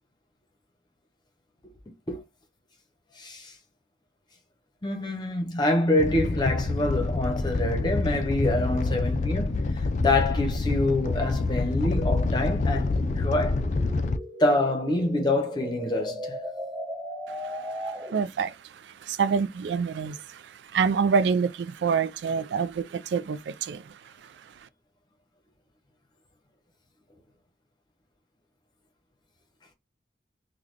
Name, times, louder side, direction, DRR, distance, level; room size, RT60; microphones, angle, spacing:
voice 1, 3.2-3.5 4.8-13.7 14.4-16.4, left 2 dB, 25° left, 0.9 m, -26 dB
Animal, 6.0-14.2, left 3 dB, 40° left, 0.3 m, -27 dB
sound 1, 11.0-18.4, equal, 10° right, 0.7 m, -40 dB
voice 2, 18.1-18.6 18.8-23.9, right 6 dB, 80° right, 0.3 m, -26 dB
3.6 x 2.3 x 3.2 m
head